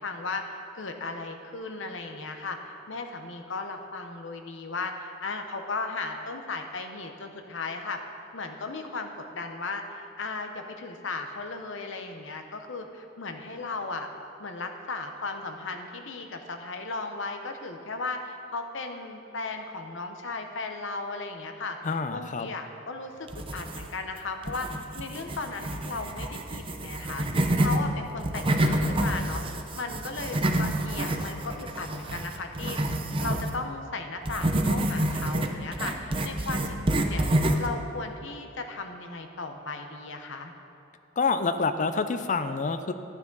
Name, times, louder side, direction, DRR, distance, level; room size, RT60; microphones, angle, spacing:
voice 1, 0.0-8.0 8.3-14.1 14.4-21.8 22.1-27.3 27.6-29.4 29.7-32.8 33.2-40.5, left 3 dB, 70° left, 5 dB, 0.9 m, -36 dB
voice 2, 21.8-22.5 41.2-42.9, left 4 dB, 40° left, 10 dB, 0.5 m, -27 dB
sound 1, 23.3-24.1 24.4-27.8 28.2-33.5 34.2-37.7, right 1 dB, 25° right, 0.6 m, -28 dB
11.5 x 9.8 x 3.9 m, 2.8 s
head